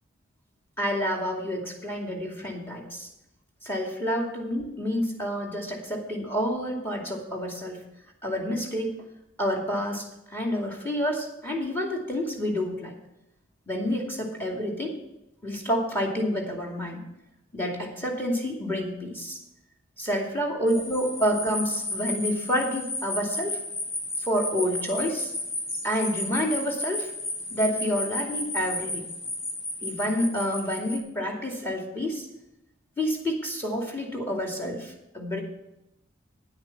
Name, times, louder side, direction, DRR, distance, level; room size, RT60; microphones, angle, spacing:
voice 1, 0.8-3.1 3.6-7.8 8.2-8.9 9.4-12.9 13.7-15.0 15.4-17.0 17.5-19.4 20.0-23.6 24.2-25.3 25.8-27.1 27.5-29.0 29.8-32.3 33.0-35.4, equal, 10° left, 0 dB, 2.5 m, -28 dB
sound 1, 20.7-31.0, left 2 dB, 85° left, 3.7 m, -33 dB
10.0 x 8.8 x 5.9 m, 0.88 s
head